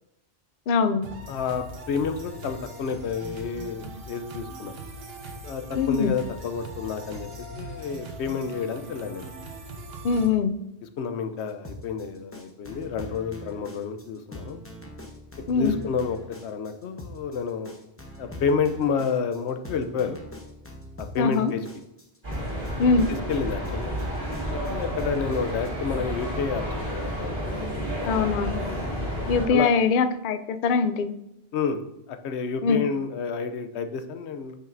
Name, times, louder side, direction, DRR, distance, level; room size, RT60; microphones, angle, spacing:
voice 1, 0.7-1.0 5.8-6.1 10.0-10.5 15.5-15.8 21.2-21.5 22.8-23.1 28.0-28.6 29.3-31.1 32.6-32.8, left 5 dB, 60° left, 11 dB, 0.6 m, -22 dB
sound 1, 1.0-10.3, right 1 dB, 65° right, 1.1 m, -40 dB
voice 2, 1.3-4.7 5.5-5.6 5.9-7.3 7.6-9.3 10.8-14.6 15.5-16.2 16.4-17.7 18.2-20.2 21.0-21.7 23.1-23.9 24.5-28.3 29.5-29.7 31.5-31.8 32.1-34.6, left 6 dB, 80° left, 8 dB, 0.9 m, -30 dB
sound 2, 11.5-25.7, left 1 dB, 15° left, 0.8 m, -42 dB
sound 3, 22.2-29.5, equal, 45° right, 3.0 m, -30 dB
8.9 x 5.5 x 2.6 m, 0.85 s
omnidirectional pair, 1.1 m